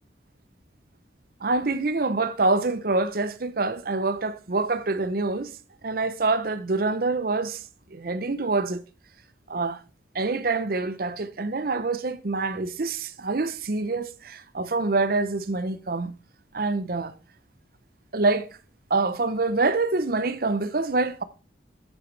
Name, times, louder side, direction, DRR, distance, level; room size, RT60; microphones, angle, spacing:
voice 1, 1.4-5.5 5.8-7.6 7.9-8.8 9.5-9.8 10.1-16.1 16.5-17.1 18.1-18.5 18.9-21.2, right 3 dB, 50° right, 0.6 m, -26 dB
9.1 x 8.9 x 3.3 m
head